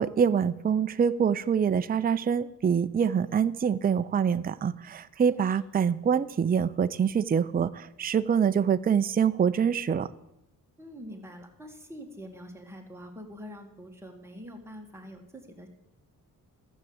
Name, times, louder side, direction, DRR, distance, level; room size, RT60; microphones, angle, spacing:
voice 1, 0.0-10.1, right 7 dB, 25° right, 12 dB, 0.4 m, -25 dB
voice 2, 10.8-15.7, equal, 5° right, 2 dB, 1.9 m, -45 dB
13.5 x 7.3 x 7.9 m, 0.86 s
wide cardioid pair, 125°, 37 cm